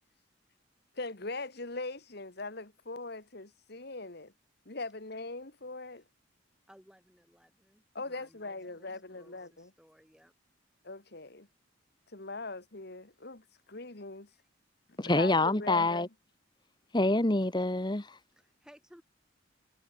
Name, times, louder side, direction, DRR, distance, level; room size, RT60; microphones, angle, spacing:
voice 1, 1.0-4.3 4.7-6.0 8.0-9.7 10.8-11.5 12.1-14.3 14.9-16.1, left 3 dB, 50° left, 1.9 m, -41 dB
voice 2, 6.7-10.3 14.3-14.5 18.3-19.0, equal, 5° right, 6.3 m, -60 dB
voice 3, 15.0-16.1 16.9-18.2, left 2 dB, 20° left, 1.1 m, -26 dB
head